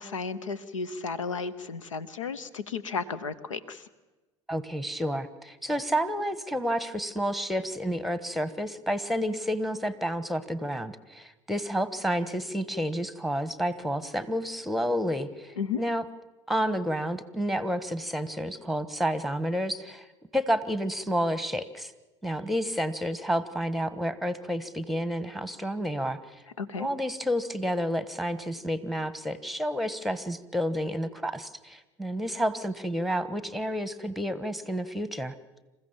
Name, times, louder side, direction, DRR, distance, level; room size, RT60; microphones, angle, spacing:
voice 1, 0.0-3.8 15.6-15.8 26.6-26.9, left 5 dB, 90° left, 17 dB, 0.8 m, -33 dB
voice 2, 4.5-16.0 16.5-20.1 20.3-21.9 22.2-26.2 26.8-35.3, equal, ahead, 14 dB, 1.3 m, -30 dB
27.5 x 15.0 x 7.3 m, 1.2 s
hypercardioid pair, 70°, 16 cm